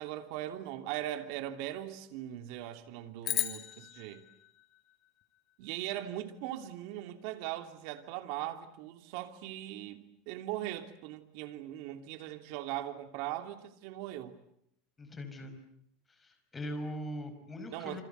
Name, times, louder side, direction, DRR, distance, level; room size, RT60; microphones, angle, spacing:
voice 1, 0.0-4.3 5.6-14.4 17.7-18.0, right 13 dB, 60° right, 2.9 m, -40 dB
sound 1, 3.2-5.7, left 13 dB, 40° left, 2.8 m, -37 dB
voice 2, 15.0-15.6 16.2-18.0, equal, 15° left, 5.6 m, -41 dB
28.0 x 26.5 x 8.1 m
supercardioid pair, 145°, 0 cm